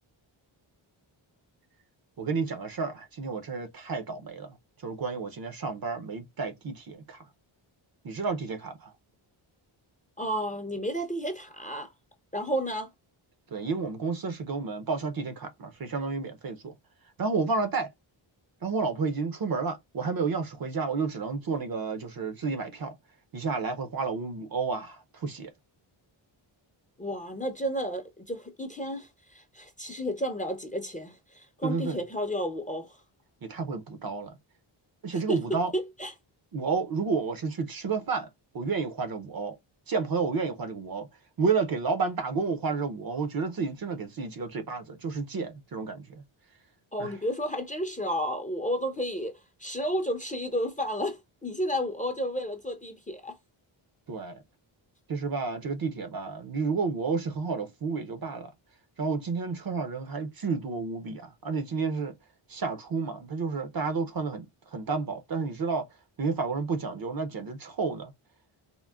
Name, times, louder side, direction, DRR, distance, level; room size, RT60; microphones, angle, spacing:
voice 1, 2.2-4.6 4.8-7.2 8.0-8.9 13.5-16.7 17.2-17.9 18.6-23.0 23.3-25.5 31.6-32.0 33.4-34.3 35.0-35.7 36.5-38.3 38.5-39.6 39.9-41.1 41.4-46.2 47.0-47.1 54.1-54.4 55.1-58.5 59.0-62.1 62.5-65.8 66.2-68.1, right 4 dB, 45° right, 0.6 m, -31 dB
voice 2, 10.2-11.9 12.3-12.9 27.0-33.0 35.1-36.1 46.9-53.4, equal, 15° left, 0.5 m, -32 dB
3.6 x 2.0 x 2.2 m
wide cardioid pair, 90°, 49 cm